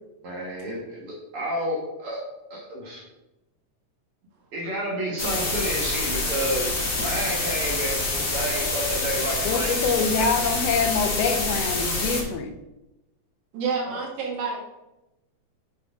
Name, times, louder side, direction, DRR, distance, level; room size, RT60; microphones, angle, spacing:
voice 1, 0.2-2.2 2.5-3.0 4.5-9.8 10.1-10.2 13.9-14.0, right 1 dB, 55° right, -2 dB, 2.1 m, -30 dB
sound 1, 5.2-12.2, left 2 dB, 35° left, 1.3 m, -27 dB
voice 2, 9.4-12.5, left 5 dB, 70° left, 5 dB, 1.8 m, -25 dB
voice 3, 13.5-14.6, right 5 dB, 85° right, -2 dB, 2.9 m, -28 dB
7.8 x 6.1 x 3.6 m, 0.96 s
omnidirectional pair, 3.4 m